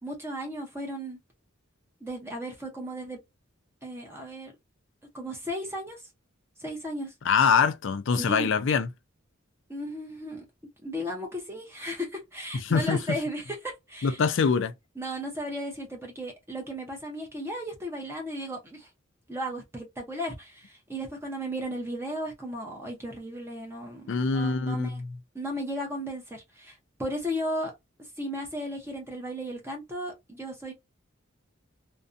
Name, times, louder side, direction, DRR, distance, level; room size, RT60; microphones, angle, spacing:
voice 1, 0.0-1.2 2.0-3.2 3.8-4.5 5.1-6.0 6.6-7.1 8.2-8.5 9.7-10.5 10.8-14.2 15.0-18.9 19.3-25.0 25.3-27.7 28.2-30.7, equal, 15° right, 0.7 m, -35 dB
voice 2, 7.2-8.9 12.7-13.0 14.0-14.7 24.1-25.1, left 5 dB, 65° left, 0.4 m, -24 dB
2.5 x 2.2 x 2.5 m
head